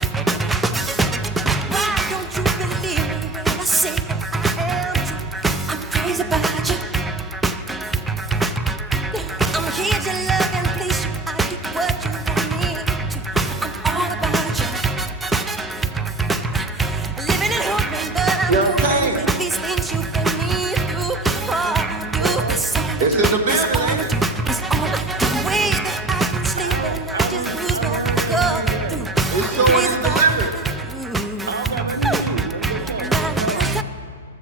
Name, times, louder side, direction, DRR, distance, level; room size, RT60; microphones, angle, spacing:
voice 1, 1.5-2.1 2.9-3.0 4.6-4.9 5.9-6.5 9.8-10.0 10.3-10.5 10.9-11.0 11.8-11.9 12.6-12.7 13.9-14.1 14.3-14.4 17.3-18.5 19.4-19.5 20.5-20.7 21.5-21.9 22.2-22.4 24.7-24.9 25.2-25.8 26.2-26.3 28.3-28.5 29.7-29.9 32.1-32.2 33.1-33.3 33.8-33.9, right 3 dB, 5° right, 0.4 m, -20 dB
voice 2, 18.5-19.2 23.0-24.1 29.3-30.5, right 3 dB, 40° right, 1.4 m, -19 dB
voice 3, 22.2-22.6 26.6-29.0 31.5-33.1 33.4-33.7, right 3 dB, 90° right, 1.0 m, -27 dB
12.5 x 7.7 x 6.1 m
hypercardioid pair, 165°, 0 cm